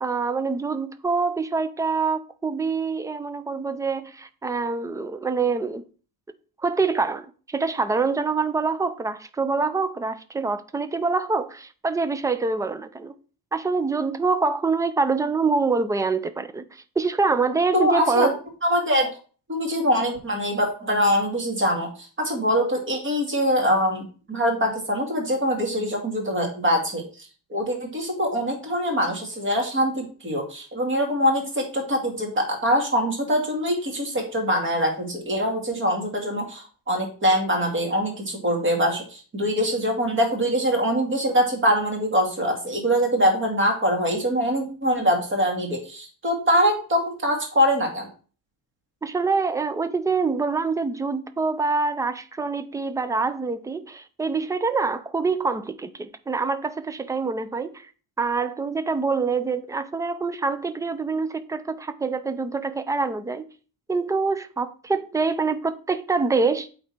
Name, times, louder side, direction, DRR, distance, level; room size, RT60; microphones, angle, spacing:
voice 1, 0.0-5.8 6.6-13.2 13.5-18.3 49.0-57.9 58.2-63.5 63.9-66.7, right 4 dB, 10° right, 0.3 m, -25 dB
voice 2, 17.7-18.3 18.6-19.1 19.5-48.1, equal, 30° right, 2.4 m, -23 dB
8.5 x 4.2 x 4.4 m
cardioid pair, 155°, 41 cm